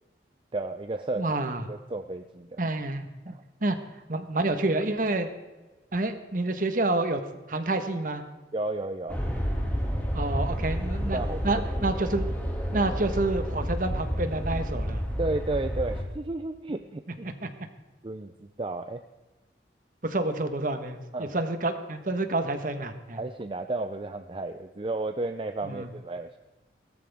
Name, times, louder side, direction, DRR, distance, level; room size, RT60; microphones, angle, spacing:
voice 1, 0.5-1.4 1.7-2.6 3.3-3.4 8.5-9.2 11.1-11.4 15.2-17.0 18.0-19.0 21.1-21.4 23.1-26.4, right 2 dB, 30° right, 8 dB, 0.5 m, -32 dB
voice 2, 1.2-1.6 2.6-3.3 3.6-3.8 4.1-5.3 5.9-7.2 7.5-8.2 10.1-11.2 11.4-12.3 12.7-15.0 17.2-17.5 20.0-23.2 25.6-25.9, right 2 dB, 50° right, 8 dB, 1.3 m, -28 dB
sound 1, 9.1-16.0, equal, 10° left, 2.3 m, -30 dB
17.0 x 13.5 x 3.6 m, 1.2 s
head